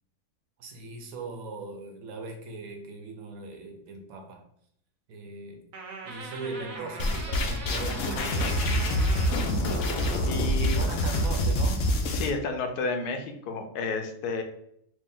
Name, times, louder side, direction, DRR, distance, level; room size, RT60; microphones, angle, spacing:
voice 1, 0.6-4.4 5.1-5.6 6.0-8.6 10.6-11.8, right 3 dB, 70° right, 3 dB, 1.1 m, -39 dB
sound 1, 5.7-10.7, right 3 dB, 90° right, 1.2 m, -41 dB
sound 2, 7.0-12.3, equal, 65° left, 0.8 m, -26 dB
voice 2, 10.2-10.8 12.1-14.4, left 4 dB, 85° left, 5 dB, 1.2 m, -31 dB
3.3 x 2.7 x 3.6 m, 0.71 s
omnidirectional pair, 1.6 m